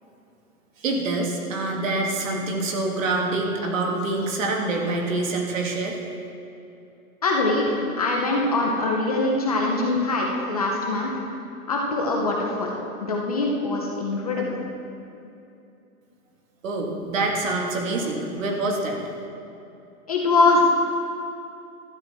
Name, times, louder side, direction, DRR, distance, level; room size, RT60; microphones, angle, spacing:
voice 1, 0.8-6.0 16.6-19.0, right 2 dB, 60° right, 1 dB, 1.9 m, -26 dB
voice 2, 7.2-11.1 11.7-12.7 13.0-14.6 20.1-20.7, left 3 dB, 25° left, -1 dB, 0.6 m, -23 dB
12.5 x 9.1 x 4.3 m, 2.7 s
hypercardioid pair, 180°, 45 cm